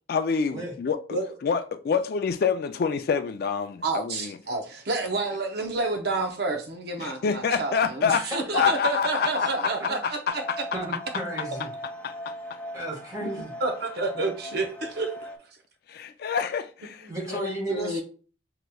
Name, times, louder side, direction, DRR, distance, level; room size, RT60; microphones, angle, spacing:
voice 1, 0.1-4.4 7.0-8.2 8.5-9.7 10.0-10.6 12.0-12.3 15.9-17.5, left 6 dB, 55° left, 0.3 m, -27 dB
voice 2, 3.8-10.4 13.2-13.3 13.6-15.1 17.0-17.1 17.7-18.0, right 3 dB, 60° right, 0.7 m, -29 dB
voice 3, 8.1-8.7 10.7-11.7 12.7-13.5 17.1-18.0, right 1 dB, 20° right, 1.6 m, -33 dB
sound 1, 10.3-15.4, equal, 10° left, 0.7 m, -40 dB
6.3 x 2.9 x 2.3 m
head